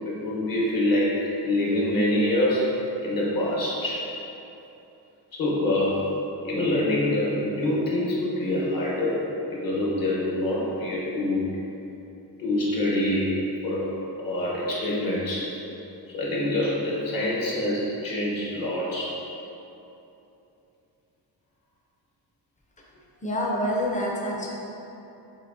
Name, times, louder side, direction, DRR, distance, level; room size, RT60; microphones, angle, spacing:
voice 1, 0.1-1.2 1.4-2.7 3.0-4.1 5.3-6.0 6.4-11.5 12.4-13.3 13.6-13.9 14.2-15.5 16.1-19.2, left 1 dB, 50° left, -5 dB, 0.9 m, -25 dB
voice 2, 23.2-24.5, equal, 20° left, -3 dB, 0.5 m, -27 dB
5.1 x 2.1 x 2.5 m, 2.9 s
wide cardioid pair, 105°, 45 cm